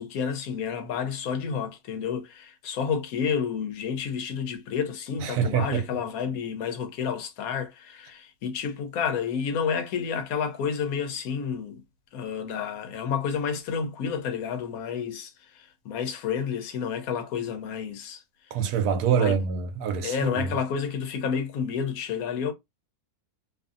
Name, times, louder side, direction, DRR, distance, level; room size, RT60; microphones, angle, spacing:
voice 1, 0.0-11.8 12.1-18.2 19.2-19.3 20.0-22.5, left 6 dB, 70° left, 1.0 m, -30 dB
voice 2, 5.2-5.8 18.5-20.5, right 7 dB, 85° right, 1.2 m, -25 dB
2.7 x 2.6 x 2.3 m
omnidirectional pair, 1.6 m